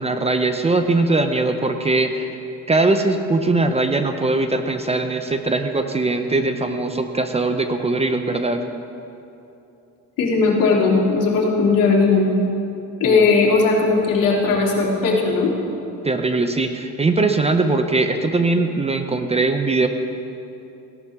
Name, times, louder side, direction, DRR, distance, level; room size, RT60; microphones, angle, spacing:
voice 1, 0.0-2.3 2.7-8.6 13.0-13.2 16.0-19.9, right 3 dB, 20° right, 7 dB, 0.6 m, -20 dB
voice 2, 10.2-12.3 13.0-15.5, left 4 dB, 65° left, -4 dB, 2.8 m, -17 dB
16.5 x 11.5 x 3.6 m, 2.8 s
cardioid pair, 115°, 35 cm